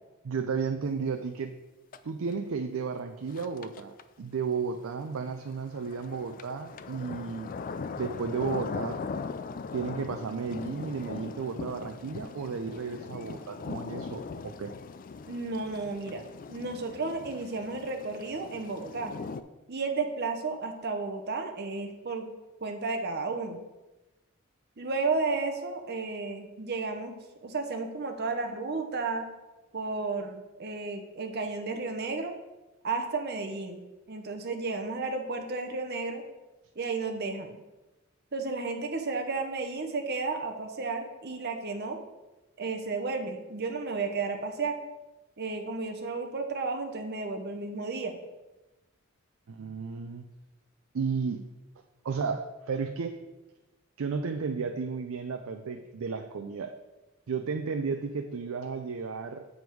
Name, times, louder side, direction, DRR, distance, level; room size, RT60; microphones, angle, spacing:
voice 1, 0.2-1.6 2.0-7.5 8.0-9.0 9.7-14.7 49.5-50.2 50.9-51.4 52.0-53.2 54.0-56.8 57.3-59.5, right 5 dB, 80° right, 6 dB, 0.5 m, -33 dB
sound 1, 1.9-2.1 2.3-2.4 3.3-4.0 5.2-19.4, left 4 dB, 40° left, 0.3 m, -40 dB
voice 2, 15.3-19.1 19.7-22.3 22.6-23.6 24.8-29.3 29.7-32.3 32.8-33.8 34.1-36.2 36.8-37.6 38.3-42.0 42.6-44.8 45.4-48.1, right 3 dB, 50° right, 5 dB, 0.9 m, -33 dB
7.7 x 5.2 x 4.6 m, 1.1 s
head